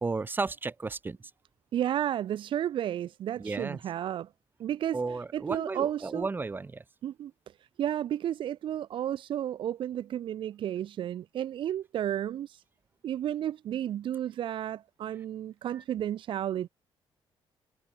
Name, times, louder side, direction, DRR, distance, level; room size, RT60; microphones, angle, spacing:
voice 1, 0.0-1.2 3.4-3.8 4.9-6.8, right 3 dB, 20° right, 1.0 m, -33 dB
voice 2, 1.7-4.3 4.6-5.0 5.3-6.3 7.0-7.3 7.8-12.6 13.0-16.7, right 11 dB, 65° right, 1.0 m, -32 dB
cardioid pair, 110°, 9 cm